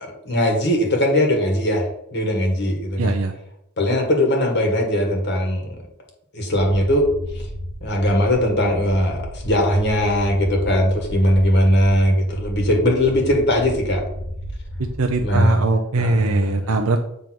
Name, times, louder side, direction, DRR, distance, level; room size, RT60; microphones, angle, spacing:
voice 1, 0.0-3.2 3.8-5.8 6.3-7.5 7.8-14.0 15.2-15.7 16.0-16.6, equal, 50° left, 2 dB, 1.5 m, -20 dB
voice 2, 3.0-3.3 14.8-17.0, right 2 dB, 75° right, 3 dB, 0.6 m, -21 dB
sound 1, 6.6-15.3, equal, 80° left, 1.4 m, -33 dB
7.6 x 3.5 x 6.0 m, 0.79 s
head